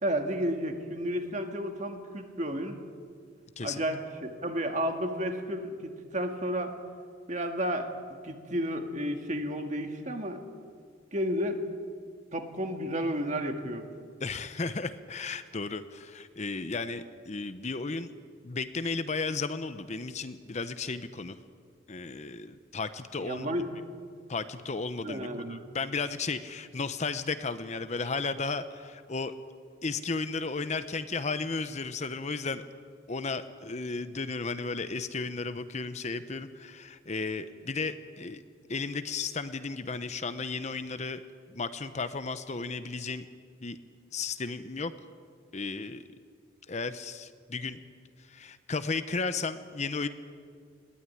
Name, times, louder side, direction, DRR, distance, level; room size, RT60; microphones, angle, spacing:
voice 1, 0.0-2.8 3.6-6.7 7.3-7.9 8.2-10.4 11.1-11.6 12.3-13.8 23.2-23.7 25.0-25.6, equal, 35° right, 5 dB, 1.9 m, -32 dB
voice 2, 14.2-18.1 18.4-21.4 21.9-23.5 24.3-29.3 29.8-32.6 33.1-38.4 38.7-41.2 41.5-43.3 43.6-43.8 44.1-44.9 45.5-46.0 46.7-47.8 48.3-50.1, left 4 dB, 35° left, 11 dB, 0.7 m, -34 dB
20.5 x 16.0 x 9.8 m, 2.1 s
head